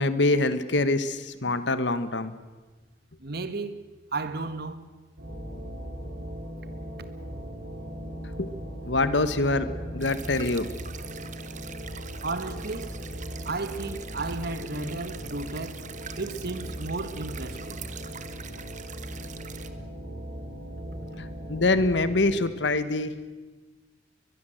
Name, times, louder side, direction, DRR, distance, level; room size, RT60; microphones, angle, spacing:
voice 1, 0.0-2.3 8.4-8.5 8.9-10.7 21.2-23.1, left 2 dB, 75° left, 1.4 m, -25 dB
voice 2, 3.2-3.8 4.1-4.8 12.2-12.9 13.4-15.8 16.2-17.8, right 3 dB, 60° right, 1.7 m, -33 dB
sound 1, 5.2-22.4, equal, 80° right, 6.9 m, -38 dB
sound 2, 10.0-19.7, right 7 dB, 45° right, 1.5 m, -44 dB
22.0 x 21.5 x 7.9 m
head